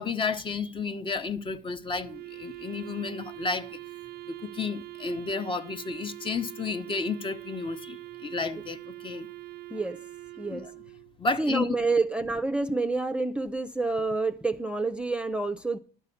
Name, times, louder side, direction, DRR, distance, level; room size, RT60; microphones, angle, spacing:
voice 1, 0.0-3.8 4.3-9.3 10.5-10.7 11.2-11.7, left 4 dB, 30° left, 0.8 m, -32 dB
Wind instrument woodwind instrument, 1.9-11.2, right 18 dB, 65° right, 0.5 m, -43 dB
voice 2, 11.4-15.8, right 3 dB, 5° right, 0.5 m, -28 dB
12.0 x 5.6 x 7.0 m
cardioid pair, 110°, 17 cm